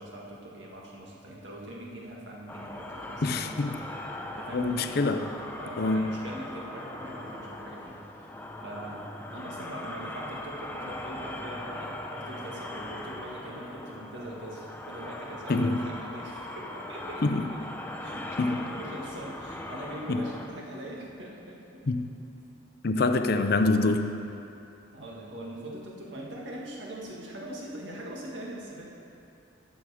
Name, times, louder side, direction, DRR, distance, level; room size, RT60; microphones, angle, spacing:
voice 1, 0.0-3.7 4.4-4.9 5.6-8.0 8.6-17.4 18.0-21.8 23.0-23.4 24.9-28.9, right 1 dB, 75° right, -3 dB, 1.8 m, -42 dB
sound 1, 2.5-20.5, left 1 dB, 10° left, 0.6 m, -40 dB
voice 2, 3.2-3.8 4.5-5.3 5.8-6.1 15.5-15.9 17.2-17.4 18.4-18.6 20.1-20.3 21.9-22.1 22.8-24.2, left 3 dB, 55° left, 8 dB, 0.5 m, -25 dB
12.5 x 7.2 x 4.9 m, 2.8 s
head